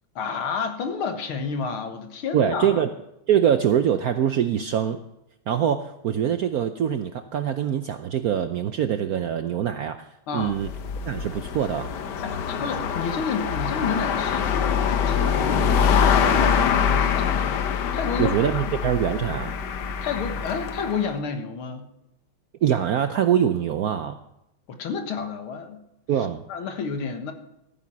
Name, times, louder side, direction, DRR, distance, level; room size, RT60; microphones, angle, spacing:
voice 1, 0.2-2.8 10.3-10.6 12.2-17.6 17.9-18.9 20.0-21.9 24.7-25.8 26.2-27.3, left 5 dB, 90° left, 6 dB, 2.3 m, -31 dB
voice 2, 2.3-2.9 3.3-5.0 5.5-10.1 10.3-10.7 11.1-11.9 18.2-19.6 22.6-24.2 26.1-26.4, right 9 dB, 75° right, 9 dB, 0.8 m, -23 dB
sound 1, 10.4-21.1, left 7 dB, 60° left, 1.4 m, -24 dB
15.0 x 9.5 x 5.7 m, 0.83 s
omnidirectional pair, 2.3 m